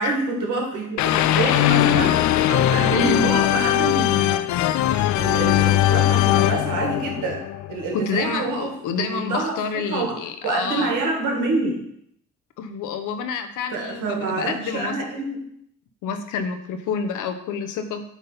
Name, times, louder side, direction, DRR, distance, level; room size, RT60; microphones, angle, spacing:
voice 1, 0.0-4.5 4.9-7.4 7.7-10.2 10.4-11.8 13.7-15.4, right 3 dB, 85° right, 0 dB, 2.0 m, -27 dB
sound 1, 1.0-7.9, left 13 dB, 70° left, 0.4 m, -20 dB
voice 2, 2.9-3.2 6.4-6.5 7.9-11.0 12.6-15.0 16.0-18.0, left 5 dB, 85° left, 8 dB, 0.9 m, -28 dB
8.3 x 3.7 x 5.5 m, 0.73 s
cardioid pair, 90°, 30 cm